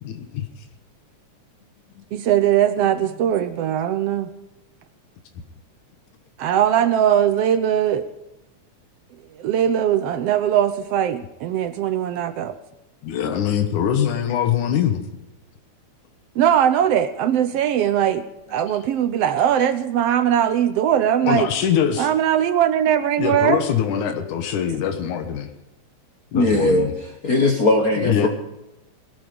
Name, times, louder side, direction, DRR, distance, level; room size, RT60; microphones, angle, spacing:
voice 1, 0.0-0.5 2.0-2.1 13.0-15.0 21.2-22.1 23.2-25.5 26.3-26.9 28.0-28.3, left 9 dB, 90° left, 7 dB, 2.8 m, -23 dB
voice 2, 2.1-4.3 6.4-8.0 9.4-12.6 16.4-18.2 18.5-21.5 22.0-23.6, right 10 dB, 70° right, 11 dB, 1.5 m, -20 dB
voice 3, 26.3-28.3, left 2 dB, 55° left, 4 dB, 1.0 m, -19 dB
19.0 x 13.5 x 5.2 m, 0.95 s
omnidirectional pair, 3.4 m